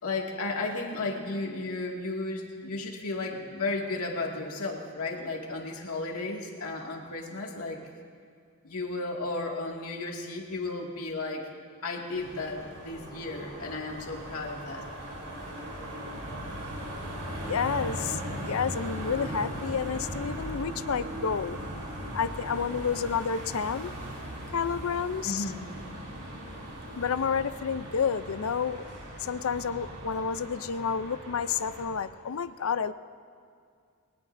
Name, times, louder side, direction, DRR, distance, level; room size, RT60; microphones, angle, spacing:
voice 1, 0.0-7.8 8.6-11.5 11.8-14.8 25.2-25.7, left 3 dB, 85° left, -1 dB, 2.2 m, -34 dB
sound 1, 12.1-31.8, right 1 dB, 90° right, 4.0 m, -39 dB
voice 2, 17.4-21.6 22.1-23.9 24.5-25.5 27.0-28.8 29.2-32.9, left 6 dB, 70° left, 13 dB, 0.5 m, -30 dB
23.5 x 18.5 x 2.6 m, 2.2 s
head